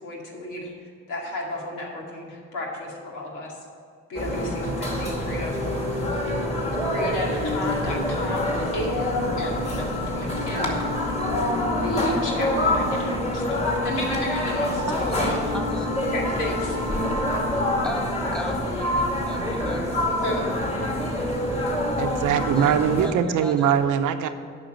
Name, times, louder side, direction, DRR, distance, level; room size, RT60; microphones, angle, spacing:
voice 1, 0.0-3.5 4.1-5.6 6.8-11.1 11.8-15.4 16.0-16.8 20.2-20.5, left 1 dB, 90° left, -2 dB, 2.4 m, -33 dB
sound 1, 4.1-23.1, left 1 dB, 20° left, 2.2 m, -26 dB
voice 2, 14.9-16.0 17.8-20.2 20.6-23.7, equal, 5° left, 2 dB, 1.7 m, -37 dB
voice 3, 22.0-24.3, right 8 dB, 85° right, 8 dB, 0.8 m, -22 dB
9.1 x 5.9 x 7.8 m, 2.3 s
cardioid pair, 90°, 30 cm